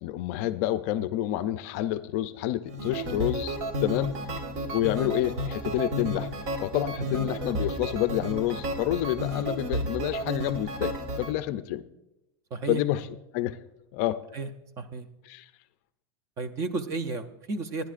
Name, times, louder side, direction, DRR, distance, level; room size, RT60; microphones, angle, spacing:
voice 1, 0.0-4.2 4.7-6.3 6.6-11.8 12.7-13.0 13.3-13.6 13.9-14.2 15.3-15.5, left 14 dB, 40° left, 12 dB, 0.4 m, -28 dB
sound 1, 2.7-11.3, equal, 55° right, 1.5 m, -32 dB
voice 2, 12.5-12.8 14.3-14.5 14.8-15.1 16.4-17.9, right 3 dB, 25° right, 10 dB, 0.5 m, -32 dB
27.0 x 10.5 x 2.5 m, 0.94 s
supercardioid pair, 175°, 13 cm